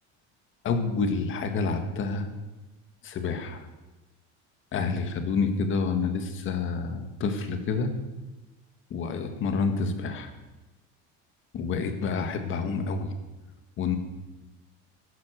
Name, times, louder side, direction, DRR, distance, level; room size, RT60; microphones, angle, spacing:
voice 1, 0.6-2.3 3.0-3.6 4.7-7.9 8.9-10.3 11.5-13.1 13.8-14.0, left 4 dB, 40° left, 7 dB, 1.9 m, -28 dB
15.5 x 12.0 x 6.6 m, 1.1 s
cardioid pair, 160°, 32 cm